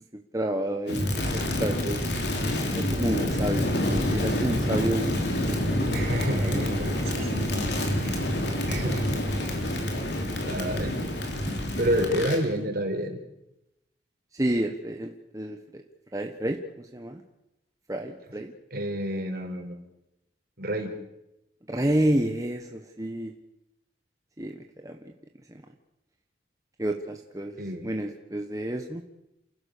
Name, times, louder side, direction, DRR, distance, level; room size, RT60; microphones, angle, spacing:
voice 1, 0.3-2.0 2.3-6.0 6.4-6.9 12.2-12.3 14.3-15.8 16.1-17.2 17.9-18.5 21.7-23.3 24.4-24.6 24.8-25.1 25.5-25.6 26.8-29.0, right 1 dB, 20° right, 3 dB, 1.2 m, -30 dB
Crackle, 0.9-12.4, left 1 dB, 60° left, 3.8 m, -27 dB
voice 2, 5.9-7.7 8.0-8.3 8.7-9.5 10.4-10.9 11.8-13.2 18.7-19.8 20.6-20.9 27.6-27.9, equal, 55° right, 3 dB, 4.4 m, -29 dB
29.0 x 16.0 x 6.7 m, 0.88 s
head